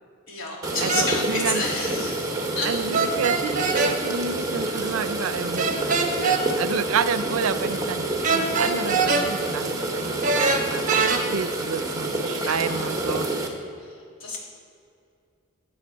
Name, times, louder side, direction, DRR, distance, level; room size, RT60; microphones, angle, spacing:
voice 1, 0.3-2.8 12.4-12.9 13.8-14.4, left 3 dB, 75° left, -3 dB, 3.1 m, -30 dB
sound 1, 0.6-13.5, right 2 dB, 15° right, 1.2 m, -28 dB
voice 2, 0.8-1.7 2.6-11.1 11.3-13.3, right 6 dB, 80° right, 13 dB, 0.5 m, -30 dB
sound 2, 0.9-1.1 2.9-3.9 5.6-6.4 8.2-9.3 10.2-11.2, right 4 dB, 40° right, 1.1 m, -22 dB
15.5 x 8.9 x 4.5 m, 2.4 s
head